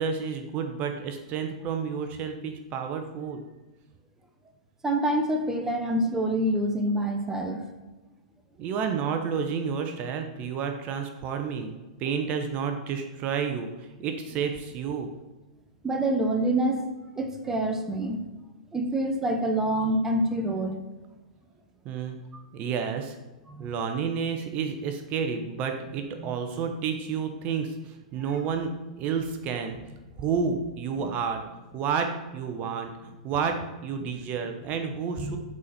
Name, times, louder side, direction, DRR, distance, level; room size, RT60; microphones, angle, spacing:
voice 1, 0.0-3.4 8.6-11.7 12.0-15.1 21.8-22.2 22.5-23.2 23.6-29.8 30.2-31.4 31.7-35.4, right 6 dB, 40° right, 5 dB, 0.8 m, -30 dB
voice 2, 4.8-7.7 15.8-16.9 17.2-18.2 18.7-20.8 22.3-22.4 23.5-23.7 26.2-26.3 31.0-31.2 34.0-34.2 35.2-35.4, right 1 dB, 10° right, 4 dB, 0.8 m, -27 dB
8.5 x 4.2 x 4.2 m, 1.1 s
hypercardioid pair, 115°, 4 cm